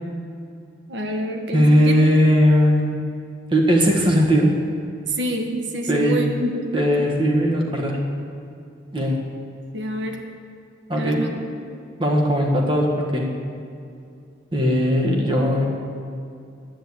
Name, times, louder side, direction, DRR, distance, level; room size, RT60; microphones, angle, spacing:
voice 1, 0.9-1.9 5.1-7.1 9.7-10.2 10.9-11.5, right 1 dB, 70° right, 3 dB, 1.5 m, -27 dB
voice 2, 1.5-3.0 3.5-4.6 5.9-6.2 6.7-8.0 8.9-9.2 10.9-11.2 12.0-13.3 14.5-15.7, equal, 25° right, 0 dB, 1.6 m, -18 dB
10.5 x 9.1 x 8.6 m, 2.5 s
head